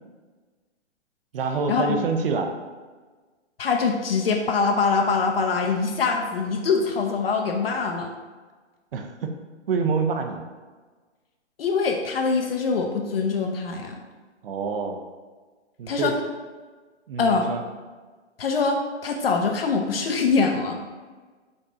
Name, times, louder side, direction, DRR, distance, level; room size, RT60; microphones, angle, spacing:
voice 1, 1.3-2.5 8.9-9.3 9.7-10.5 14.4-15.0 15.8-16.1 17.1-17.6, right 5 dB, 50° right, 4 dB, 0.6 m, -26 dB
voice 2, 3.6-8.1 11.6-14.0 15.9-16.1 17.2-17.5 18.4-20.8, left 4 dB, 55° left, 3 dB, 0.5 m, -23 dB
5.3 x 2.4 x 4.0 m, 1.4 s
hypercardioid pair, 150°, 36 cm